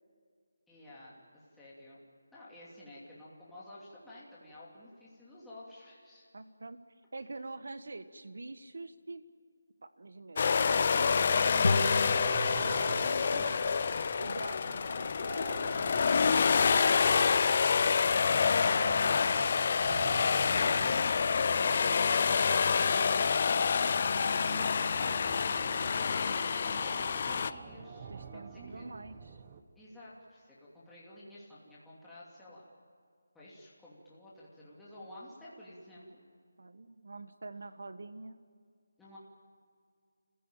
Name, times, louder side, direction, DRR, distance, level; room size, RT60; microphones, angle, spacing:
voice 1, 0.7-2.0 2.3-6.3 28.5-28.9 29.8-32.6 33.3-36.1 39.0-39.2, left 1 dB, 5° left, -9 dB, 2.7 m, -52 dB
voice 2, 6.3-6.8 7.1-9.2 9.8-13.7 14.2-17.7 18.8-19.5 28.1-29.4 36.6-38.4, right 3 dB, 65° right, 11 dB, 1.5 m, -45 dB
sound 1, 10.4-27.5, left 5 dB, 35° left, 0.5 m, -27 dB
sound 2, 11.6-15.0, left 3 dB, 60° left, 2.3 m, -35 dB
sound 3, 11.7-29.6, right 5 dB, 25° right, 1.0 m, -47 dB
27.0 x 16.0 x 9.0 m, 2.2 s
figure-of-eight pair, 175°, 0 cm